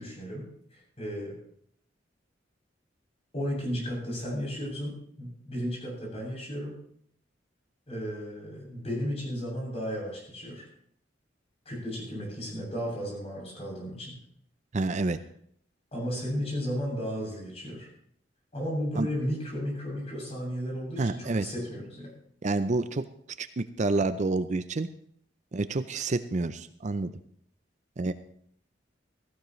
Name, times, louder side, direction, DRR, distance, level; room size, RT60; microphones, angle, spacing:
voice 1, 0.0-1.3 3.3-6.8 7.9-10.7 11.6-14.1 15.9-17.9 18.5-22.1, equal, 35° left, -2 dB, 7.6 m, -34 dB
voice 2, 14.7-15.2 19.0-19.1 21.0-21.5 22.4-23.0 23.4-24.9 25.5-27.1 28.0-28.1, right 3 dB, 40° right, 11 dB, 0.5 m, -28 dB
16.5 x 15.5 x 3.1 m, 0.65 s
head